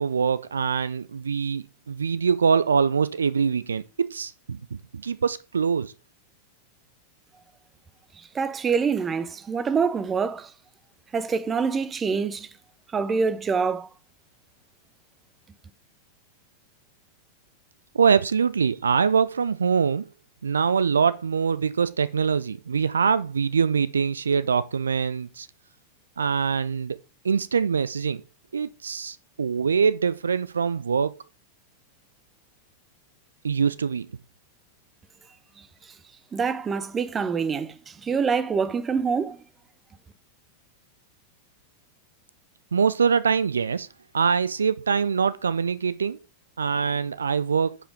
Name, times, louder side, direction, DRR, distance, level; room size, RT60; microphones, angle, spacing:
voice 1, 0.0-5.9 17.9-20.1 20.4-25.5 26.2-27.0 27.2-28.2 28.5-31.2 33.4-34.1 42.7-43.9 44.1-46.2 46.6-47.8, right 6 dB, 70° right, 0.4 m, -24 dB
voice 2, 8.2-10.5 11.1-12.5 12.9-13.9 36.3-39.4, right 5 dB, 20° right, 0.8 m, -25 dB
10.0 x 5.0 x 5.0 m
figure-of-eight pair, 90°, 0 cm